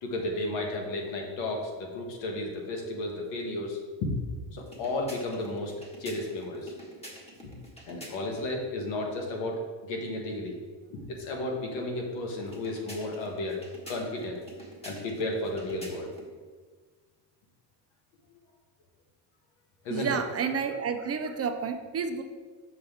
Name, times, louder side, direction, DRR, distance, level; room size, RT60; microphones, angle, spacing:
voice 1, 0.0-4.1 4.5-6.7 7.4-7.5 7.9-10.6 10.9-14.4 14.8-16.1 19.8-20.2, left 2 dB, 85° left, 1 dB, 1.5 m, -33 dB
sound 1, 4.6-8.5 12.4-16.3, equal, 15° left, 1.6 m, -48 dB
voice 2, 19.9-22.2, right 6 dB, 35° right, 7 dB, 0.5 m, -30 dB
6.4 x 6.1 x 3.5 m, 1.5 s
cardioid pair, 105°, 45 cm